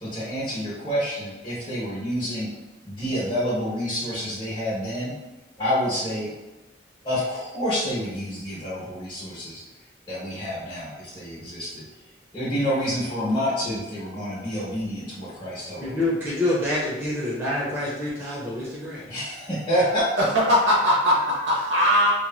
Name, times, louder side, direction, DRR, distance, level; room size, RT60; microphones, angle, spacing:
voice 1, 0.0-2.5 2.8-5.1 5.6-6.3 7.0-9.6 10.1-11.8 12.3-16.0 19.1-20.1, equal, 25° left, -8 dB, 1.1 m, -28 dB
voice 2, 15.8-19.0, left 1 dB, 10° right, -8 dB, 0.7 m, -27 dB
voice 3, 20.2-22.1, equal, 75° right, -3 dB, 1.0 m, -20 dB
3.0 x 2.7 x 2.3 m, 1.1 s
head